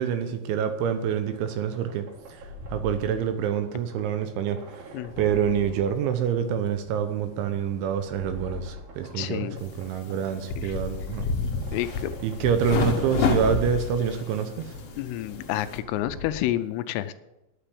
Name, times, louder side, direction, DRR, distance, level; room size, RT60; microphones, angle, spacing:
voice 1, 0.0-2.1 2.7-4.9 5.2-11.3 12.2-14.5, right 8 dB, 75° right, 8 dB, 3.0 m, -26 dB
sound 1, 0.8-16.4, left 2 dB, 50° right, 4.0 m, -44 dB
voice 2, 4.9-5.4 9.1-9.6 10.6-10.8 11.7-12.1 15.0-17.1, left 13 dB, 85° left, 12 dB, 3.3 m, -30 dB
sound 2, 9.6-15.8, left 5 dB, 65° left, 2.3 m, -30 dB
10.0 x 8.9 x 8.4 m, 0.98 s
omnidirectional pair, 5.9 m